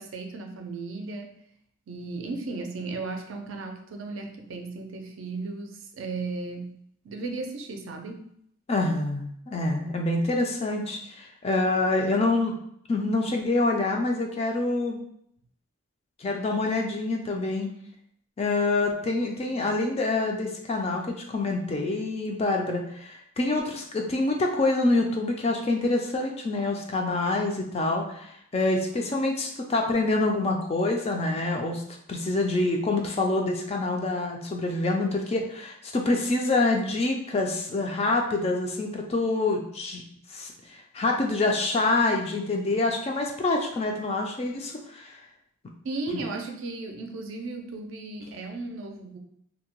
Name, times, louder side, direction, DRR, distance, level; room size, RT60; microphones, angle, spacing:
voice 1, 0.0-1.3 1.9-6.7 7.0-8.3 45.8-49.2, right 3 dB, 70° right, 4 dB, 0.4 m, -35 dB
voice 2, 8.7-12.5 12.9-15.0 16.2-17.7 18.4-31.8 32.1-40.0 40.3-45.2, left 2 dB, 30° left, 2 dB, 0.3 m, -26 dB
2.6 x 2.1 x 2.9 m, 0.70 s
head